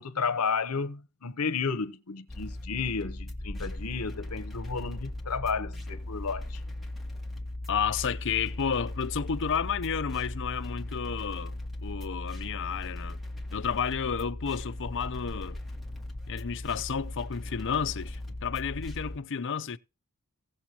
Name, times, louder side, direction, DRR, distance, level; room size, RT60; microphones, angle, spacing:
voice 1, 0.0-6.6, left 5 dB, 85° left, 0.9 m, -32 dB
sound 1, 2.3-19.2, left 1 dB, ahead, 1.6 m, -38 dB
voice 2, 7.7-11.5 11.8-13.2 13.5-15.6 16.3-19.8, left 6 dB, 60° left, 0.6 m, -31 dB
17.5 x 7.1 x 2.9 m
head